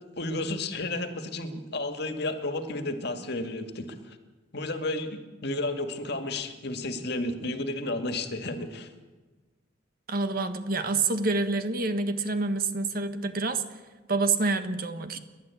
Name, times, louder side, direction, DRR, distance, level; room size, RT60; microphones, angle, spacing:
voice 1, 0.2-4.2 4.5-8.9, left 2 dB, 55° left, 7 dB, 2.1 m, -32 dB
voice 2, 10.1-13.6 14.1-15.2, right 3 dB, 50° right, 9 dB, 1.5 m, -27 dB
30.0 x 12.0 x 8.5 m, 1.3 s
head